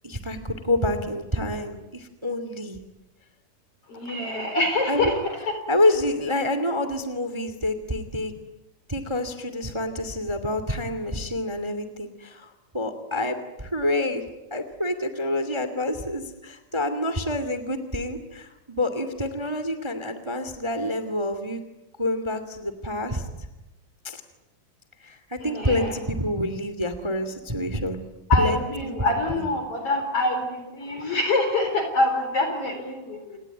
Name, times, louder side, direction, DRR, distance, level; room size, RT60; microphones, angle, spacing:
voice 1, 0.0-2.8 4.9-5.1 5.7-8.3 8.9-14.2 14.5-21.6 22.0-23.3 24.0-24.2 25.0-28.0 28.4-28.9 29.3-29.4, left 1 dB, 10° right, 10 dB, 1.4 m, -27 dB
voice 2, 3.9-5.5 25.4-26.0 28.3-33.4, left 2 dB, 40° left, 5 dB, 4.6 m, -25 dB
28.5 x 19.0 x 9.5 m, 1.0 s
omnidirectional pair, 4.0 m